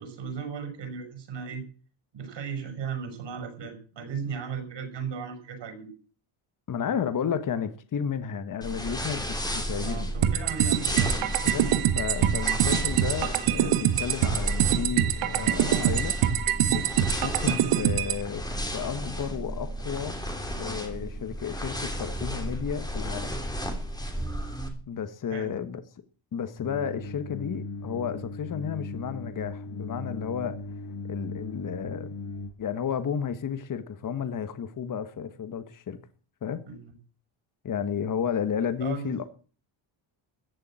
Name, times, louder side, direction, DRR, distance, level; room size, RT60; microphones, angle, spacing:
voice 1, 0.0-1.6 2.1-5.9 9.8-11.1 25.3-25.5 36.7-36.8 38.8-39.3, right 6 dB, 60° right, 7 dB, 6.2 m, -36 dB
voice 2, 6.7-10.1 11.4-16.2 16.7-18.4 18.7-20.2 20.6-23.4 24.9-25.8 26.3-30.6 31.1-32.1 32.6-36.0 36.4-36.7 37.6-39.2, left 7 dB, 40° left, 11 dB, 1.4 m, -32 dB
sound 1, 8.6-24.7, equal, 10° left, 3.2 m, -33 dB
sound 2, 10.2-18.2, right 11 dB, 75° right, 1.6 m, -24 dB
sound 3, 26.6-32.5, left 2 dB, 70° left, 5.9 m, -38 dB
15.0 x 6.9 x 9.1 m, 0.40 s
cardioid pair, 110°, 50 cm